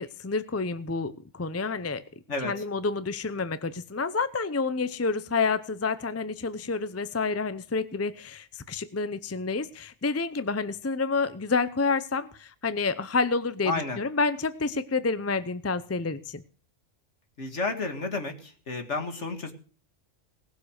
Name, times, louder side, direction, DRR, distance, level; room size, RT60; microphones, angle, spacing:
voice 1, 0.0-2.0 2.4-16.4, left 4 dB, 20° left, 14 dB, 0.5 m, -29 dB
voice 2, 13.7-14.0 17.4-19.5, left 3 dB, 65° left, 6 dB, 2.4 m, -31 dB
19.0 x 7.3 x 6.5 m, 0.41 s
omnidirectional pair, 1.3 m